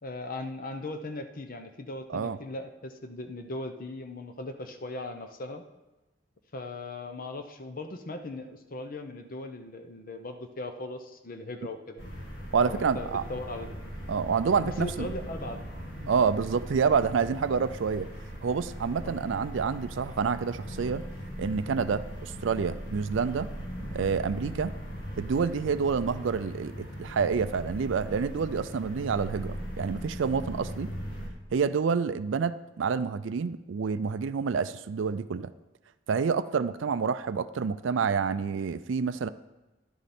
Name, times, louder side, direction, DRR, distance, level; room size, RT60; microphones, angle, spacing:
voice 1, 0.0-5.6 6.5-12.0 12.6-13.8 14.6-15.6 16.0-16.1 19.0-19.2, left 2 dB, 45° left, 6 dB, 0.8 m, -38 dB
sound 1, 12.0-31.3, equal, 65° left, 2.4 m, -39 dB
voice 2, 12.5-13.2 14.1-15.1 16.1-18.1 18.4-21.1 21.4-23.5 23.9-24.7 25.2-30.9 31.5-35.5 36.1-39.3, right 5 dB, 70° right, 13 dB, 0.4 m, -28 dB
13.0 x 11.0 x 4.3 m, 1.1 s
head